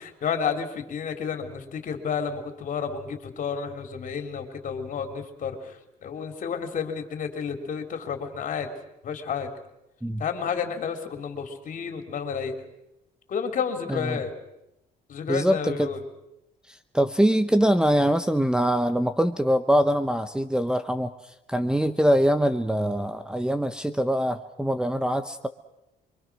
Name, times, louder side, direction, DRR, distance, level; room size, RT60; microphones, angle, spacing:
voice 1, 0.0-8.7 9.0-9.5 10.2-12.6 13.3-14.3 15.1-16.0, left 6 dB, 50° left, 5 dB, 3.7 m, -31 dB
voice 2, 13.9-14.2 15.3-15.9 16.7-25.5, equal, 5° right, 11 dB, 1.0 m, -23 dB
27.0 x 24.0 x 6.3 m, 0.88 s
cardioid pair, 110°, 17 cm